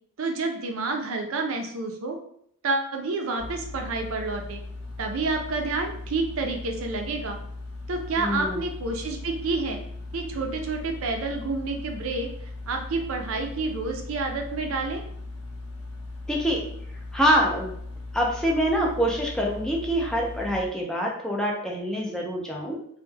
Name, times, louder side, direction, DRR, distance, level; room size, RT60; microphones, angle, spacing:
voice 1, 0.2-2.2 2.6-4.6 5.0-7.4 7.9-9.8 10.1-12.3 12.7-15.0, right 3 dB, 65° right, 3 dB, 0.4 m, -29 dB
sound 1, 3.4-20.6, left 2 dB, 80° left, 0.7 m, -38 dB
voice 2, 8.2-8.6 16.3-16.6 17.1-17.7 18.1-22.8, equal, 5° left, -2 dB, 0.4 m, -25 dB
2.1 x 2.1 x 3.2 m, 0.68 s
head